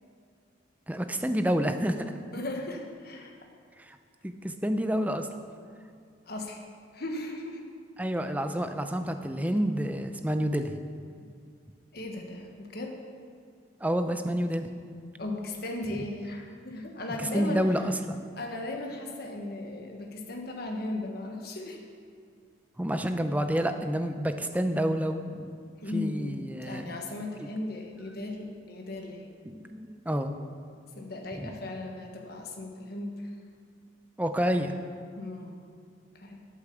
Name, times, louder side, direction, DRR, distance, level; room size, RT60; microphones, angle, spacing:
voice 1, 0.9-2.2 3.8-4.0 4.2-5.3 8.0-10.8 13.8-14.7 17.3-18.2 22.8-25.5 25.9-26.9 29.5-30.3 31.4-31.5 34.2-34.7, equal, 10° right, 7 dB, 0.5 m, -29 dB
voice 2, 2.3-3.4 6.3-6.6 6.9-7.6 11.9-13.0 15.2-17.6 18.4-21.8 25.8-29.3 30.9-33.3 35.1-35.5 36.1-36.4, left 2 dB, 55° left, 2 dB, 1.3 m, -37 dB
8.5 x 8.3 x 7.0 m, 2.2 s
head